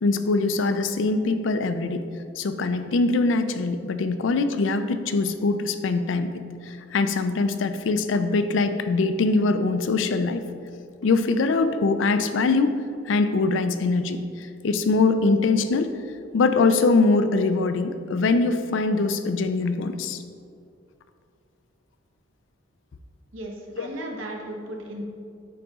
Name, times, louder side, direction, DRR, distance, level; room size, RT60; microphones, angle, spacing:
voice 1, 0.0-2.1 2.4-6.3 6.7-10.4 11.0-12.7 13.1-15.9 16.3-20.2 23.8-23.9, left 3 dB, 70° left, 9 dB, 0.4 m, -23 dB
voice 2, 23.3-25.0, right 1 dB, 75° right, 0 dB, 1.0 m, -35 dB
9.4 x 3.9 x 3.6 m, 2.4 s
head